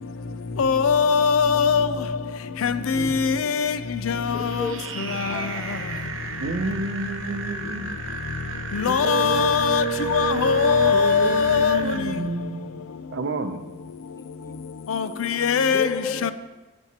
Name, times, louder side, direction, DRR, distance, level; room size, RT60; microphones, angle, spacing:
voice 1, 0.6-1.9 2.6-3.8 4.0-4.5 5.2-5.3 8.7-9.8 10.1-11.8 14.9-15.9 16.2-16.3, left 6 dB, 85° left, 0.5 m, -21 dB
voice 2, 2.9-3.3 6.4-8.0 8.9-12.7 13.1-13.6, right 4 dB, 60° right, 0.6 m, -29 dB
voice 3, 4.3-4.8 5.1-6.0 10.4-11.1 14.5-14.6 15.7-16.3, left 2 dB, 15° left, 0.5 m, -34 dB
sound 1, 4.3-12.0, right 3 dB, 85° right, 1.0 m, -35 dB
13.0 x 7.0 x 2.9 m
head